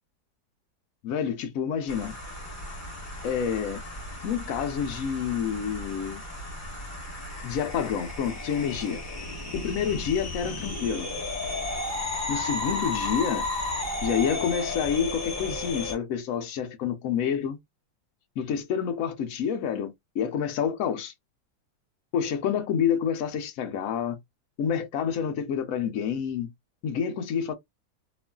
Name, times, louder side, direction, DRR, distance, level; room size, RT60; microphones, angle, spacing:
voice 1, 1.0-2.1 3.2-3.8 4.2-6.2 7.4-9.0 9.5-11.1 12.3-13.5 14.0-17.6 18.4-21.1 22.1-24.2 24.6-26.5 26.8-27.5, left 7 dB, 80° left, 0.7 m, -28 dB
sound 1, 1.9-16.0, left 2 dB, 10° left, 0.9 m, -34 dB
3.0 x 2.4 x 2.2 m
omnidirectional pair, 2.1 m